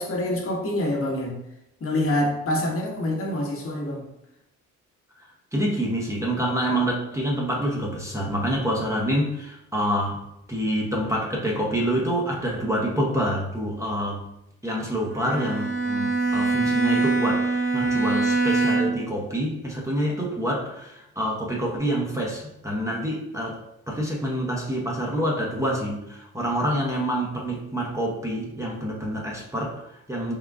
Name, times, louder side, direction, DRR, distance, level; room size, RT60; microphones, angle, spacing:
voice 1, 0.0-1.4 1.8-4.1, left 1 dB, 45° left, -1 dB, 1.1 m, -26 dB
voice 2, 5.5-10.2 10.5-14.2 14.6-23.6 23.9-30.3, equal, 10° right, -2 dB, 0.7 m, -27 dB
Bowed string instrument, 15.1-19.2, right 3 dB, 40° right, 1.1 m, -23 dB
3.7 x 2.2 x 3.5 m, 0.83 s
cardioid pair, 90°, 30 cm